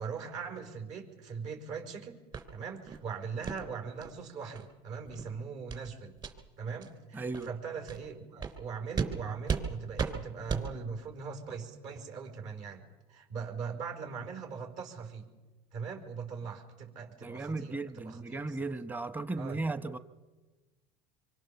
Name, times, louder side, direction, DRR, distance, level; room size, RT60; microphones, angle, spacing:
voice 1, 0.0-2.2 2.5-6.2 6.6-15.3 15.7-18.6 19.4-19.7, right 5 dB, 55° right, 5.0 m, -40 dB
sound 1, 2.3-2.4 2.9-3.0 3.4-3.6 4.0-4.1 4.5-4.6 5.0-5.2 5.7-5.8 6.2-6.3 6.8-6.9 7.3-7.5 7.9-8.0 8.4-8.5 8.9-9.1 9.5-9.6 10.0-10.1 10.5-10.6, right 6 dB, 30° right, 3.4 m, -34 dB
voice 2, 7.1-7.5 17.2-20.0, right 3 dB, 10° right, 1.1 m, -36 dB
25.5 x 24.0 x 7.1 m
supercardioid pair, 110°, 14 cm